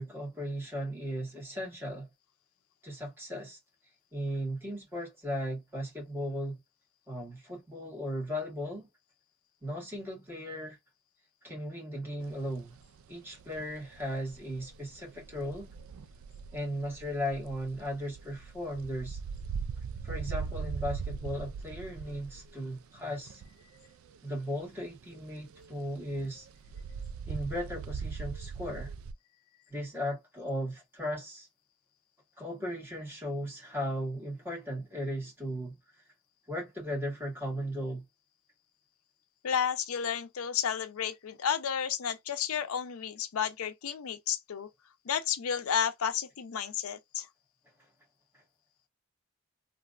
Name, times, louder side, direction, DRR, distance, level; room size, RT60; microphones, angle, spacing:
voice 1, 0.0-2.1 2.8-3.6 4.1-6.6 7.1-8.9 9.6-10.8 11.4-12.8 13.1-15.7 16.5-19.2 20.0-23.4 24.2-26.5 27.3-28.9 29.7-31.5 32.4-35.8 36.5-38.0 47.8-47.9, equal, 10° right, 1.7 m, -36 dB
sound 1, 12.2-13.1 13.3-24.2 24.4-29.1, right 6 dB, 75° right, 0.3 m, -40 dB
voice 2, 39.4-44.7 45.1-47.3, left 8 dB, 85° left, 0.5 m, -32 dB
3.2 x 2.6 x 2.4 m
head